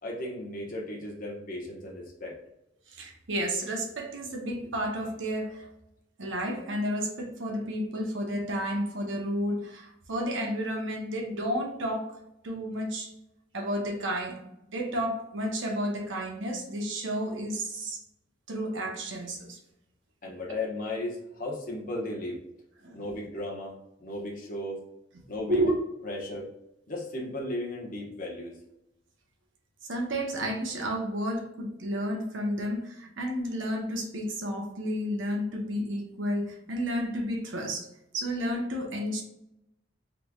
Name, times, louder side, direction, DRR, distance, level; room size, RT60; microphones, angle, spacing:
voice 1, 0.0-2.4 20.2-22.4 22.9-24.8 25.3-25.6 26.0-26.5 26.9-28.5, left 1 dB, 45° left, -3 dB, 1.0 m, -35 dB
voice 2, 2.9-5.7 6.2-12.1 12.4-13.1 13.5-18.0 18.5-19.6 22.8-23.0 25.5-25.8 29.9-37.9 38.1-39.2, equal, 75° right, 1 dB, 0.9 m, -31 dB
3.7 x 3.1 x 2.3 m, 0.83 s
head